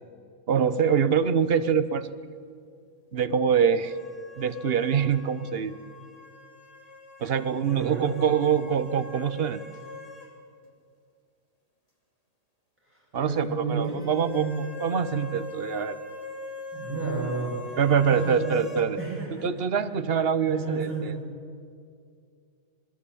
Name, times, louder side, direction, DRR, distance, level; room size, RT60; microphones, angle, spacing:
voice 1, 0.5-2.1 3.1-3.9 4.4-5.8 7.2-9.6 13.1-16.0 17.8-19.0 19.4-21.1, right 7 dB, 45° right, 13 dB, 1.0 m, -24 dB
sound 1, 3.8-10.3 10.6-10.7 13.8-18.9, left 3 dB, 20° left, 3.0 m, -43 dB
voice 2, 7.6-8.3 12.8-14.6 16.7-18.7 19.0-19.6 20.5-21.2, right 4 dB, 5° right, -5 dB, 7.6 m, -32 dB
27.0 x 20.0 x 8.5 m, 2.3 s
omnidirectional pair, 1.7 m